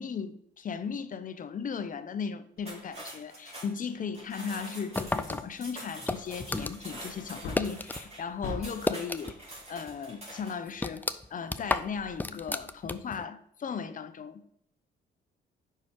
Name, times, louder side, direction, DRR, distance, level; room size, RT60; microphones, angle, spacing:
voice 1, 0.0-11.0 11.3-14.5, left 6 dB, 45° left, 0.6 m, -37 dB
sound 1, 2.6-10.7, right 1 dB, 30° right, 2.9 m, -46 dB
sound 2, 4.9-8.0 8.3-9.6 9.9-10.0 10.4-13.2, left 2 dB, 10° left, 0.3 m, -33 dB
Wood, 7.1-9.0 11.6-12.4 12.8-12.9, left 3 dB, 90° left, 1.1 m, -41 dB
5.6 x 4.8 x 4.5 m
cardioid pair, 90°, 20 cm